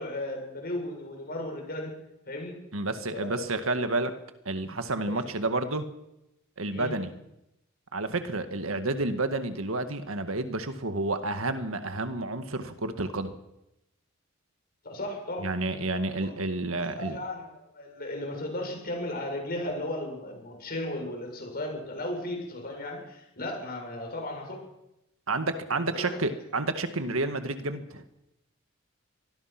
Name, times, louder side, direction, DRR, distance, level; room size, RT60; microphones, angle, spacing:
voice 1, 0.0-1.9 2.3-2.6 3.1-3.5 5.0-5.3 6.7-6.9 14.8-15.5 16.2-16.3 16.6-24.6 25.9-26.2, left 1 dB, 45° left, 2 dB, 7.5 m, -35 dB
voice 2, 2.7-4.1 4.5-5.8 6.6-7.1 7.9-13.3 15.4-17.2 25.3-28.0, right 2 dB, 75° right, 8 dB, 1.9 m, -30 dB
25.0 x 20.0 x 6.1 m, 0.89 s
head